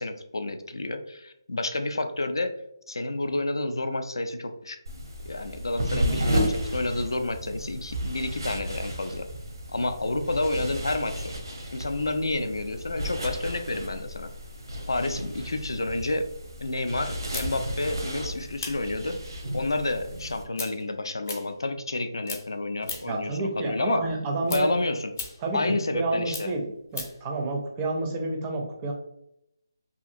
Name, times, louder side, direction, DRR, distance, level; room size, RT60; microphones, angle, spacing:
voice 1, 0.0-2.5 2.9-4.8 5.3-9.3 9.7-11.3 11.7-14.3 14.9-16.2 16.6-19.2 19.5-24.1 24.5-25.1 25.5-26.5, left 2 dB, 85° left, 8 dB, 0.4 m, -29 dB
sound 1, 4.9-20.4, equal, 85° right, 0.7 m, -33 dB
voice 2, 5.9-6.2 23.1-24.7 25.4-26.7 26.9-28.9, right 2 dB, 20° right, 1 dB, 0.4 m, -30 dB
sound 2, 17.3-22.0 22.2-23.3 23.6-27.3, left 4 dB, 35° left, 0.5 m, -39 dB
2.8 x 2.4 x 2.5 m, 0.81 s
figure-of-eight pair, 165°, 2 cm